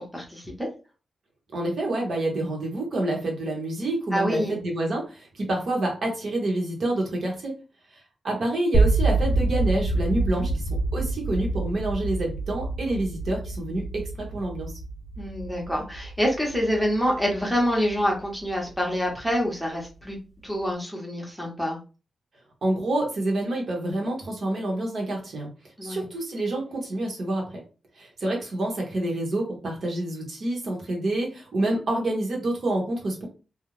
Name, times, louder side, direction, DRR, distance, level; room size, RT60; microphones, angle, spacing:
voice 1, 0.1-0.7 4.1-4.6 10.3-10.5 15.2-20.2 20.4-21.8 25.8-26.0, equal, ahead, -1 dB, 0.8 m, -26 dB
voice 2, 1.5-7.5 7.9-14.7 22.6-25.5 25.8-27.6 28.0-33.3, right 1 dB, 50° right, 0 dB, 1.0 m, -28 dB
sound 1, 8.7-18.7, right 2 dB, 30° left, 0.6 m, -27 dB
2.5 x 2.3 x 3.0 m, 0.33 s
wide cardioid pair, 165°, 0 cm